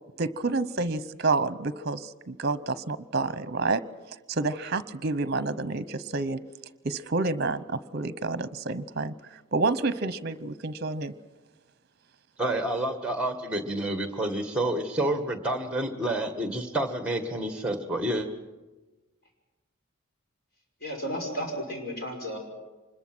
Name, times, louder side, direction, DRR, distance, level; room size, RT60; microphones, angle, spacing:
voice 1, 0.2-3.8 4.3-6.4 6.8-9.1 9.5-11.1, right 3 dB, 50° right, 15 dB, 0.8 m, -29 dB
voice 2, 12.4-18.3, right 1 dB, 5° right, 7 dB, 1.7 m, -29 dB
voice 3, 20.8-22.4, equal, 50° left, 1 dB, 5.6 m, -33 dB
25.0 x 21.0 x 6.2 m, 1.2 s
head